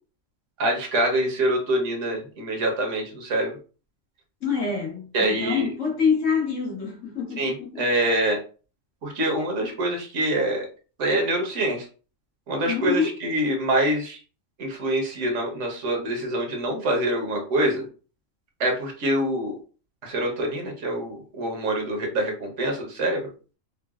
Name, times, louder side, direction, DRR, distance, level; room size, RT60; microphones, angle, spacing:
voice 1, 0.6-3.5 5.1-5.7 7.4-8.4 9.0-10.7 11.0-11.9 12.5-14.2 14.6-17.9 18.6-19.6 20.0-23.2, right 1 dB, 70° right, 1.2 m, -25 dB
voice 2, 4.4-7.9 12.7-13.2, left 6 dB, 75° left, 1.5 m, -26 dB
3.8 x 2.1 x 2.3 m
omnidirectional pair, 1.3 m